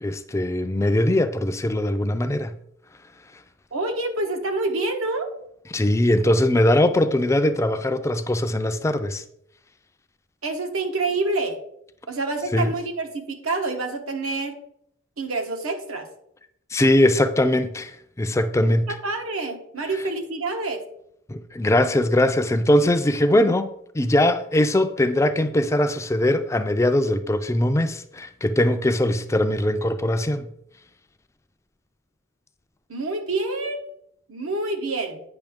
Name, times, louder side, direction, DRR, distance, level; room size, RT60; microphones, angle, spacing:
voice 1, 0.0-2.6 5.7-9.2 12.5-12.7 16.7-18.9 21.3-23.7 23.9-30.5, left 1 dB, 15° left, 0.3 m, -21 dB
voice 2, 3.7-5.3 10.4-11.6 12.1-14.5 15.2-16.1 18.6-20.8 32.9-33.8 34.3-35.2, right 2 dB, 85° right, 1.2 m, -27 dB
8.8 x 5.6 x 3.6 m
head